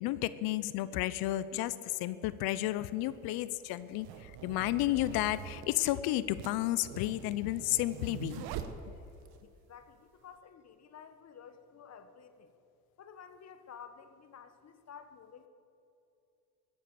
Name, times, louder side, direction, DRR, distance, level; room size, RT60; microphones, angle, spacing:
voice 1, 0.0-8.4, left 15 dB, 65° left, 16 dB, 0.7 m, -32 dB
sound 1, 2.0-2.1 3.0-9.4, right 8 dB, 70° right, 1.2 m, -45 dB
voice 2, 9.4-12.5 13.0-15.5, left 7 dB, 40° left, 10 dB, 1.2 m, -52 dB
14.5 x 10.5 x 6.9 m, 2.7 s
hypercardioid pair, 70°, 39 cm